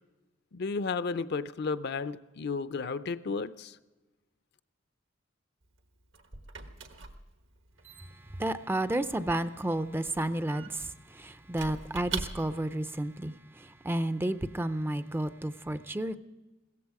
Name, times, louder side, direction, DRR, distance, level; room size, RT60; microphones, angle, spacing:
voice 1, 0.5-3.8, left 4 dB, 55° left, 0.5 m, -33 dB
Squeak / Wood, 5.6-12.8, right 5 dB, 75° right, 1.3 m, -43 dB
voice 2, 8.1-16.2, right 1 dB, 10° right, 0.4 m, -32 dB
16.5 x 14.5 x 4.8 m
head